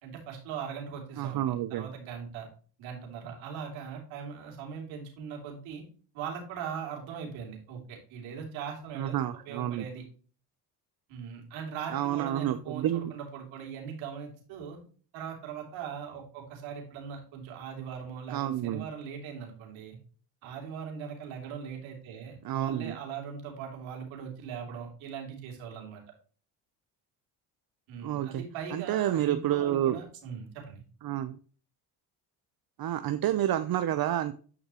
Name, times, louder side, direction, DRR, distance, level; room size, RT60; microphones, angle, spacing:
voice 1, 0.0-2.5 2.8-5.8 6.1-9.2 9.5-10.0 11.1-14.8 15.1-20.0 20.4-26.0 27.9-30.8, right 7 dB, 80° right, 1 dB, 3.3 m, -40 dB
voice 2, 1.2-1.9 9.0-9.8 11.9-13.1 18.3-18.8 22.4-22.9 28.0-28.4 28.7-30.0 31.0-31.4 32.8-34.3, right 12 dB, 50° right, 10 dB, 0.7 m, -29 dB
11.0 x 5.2 x 3.0 m, 0.40 s
supercardioid pair, 70°, 46 cm